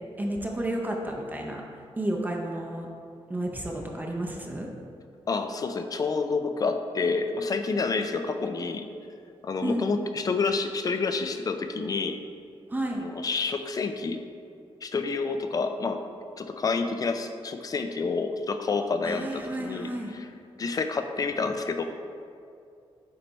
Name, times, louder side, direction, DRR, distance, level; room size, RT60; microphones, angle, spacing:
voice 1, 0.2-1.6 2.0-2.9 3.3-4.7 9.6-9.9 12.7-13.1 19.0-20.1, right 1 dB, 15° right, 0 dB, 0.6 m, -31 dB
voice 2, 5.3-8.9 9.4-12.2 13.0-14.2 14.8-16.0 16.4-20.3 20.6-21.8, left 4 dB, 35° left, 7 dB, 0.4 m, -28 dB
8.6 x 3.3 x 4.0 m, 2.4 s
wide cardioid pair, 125°, 10 cm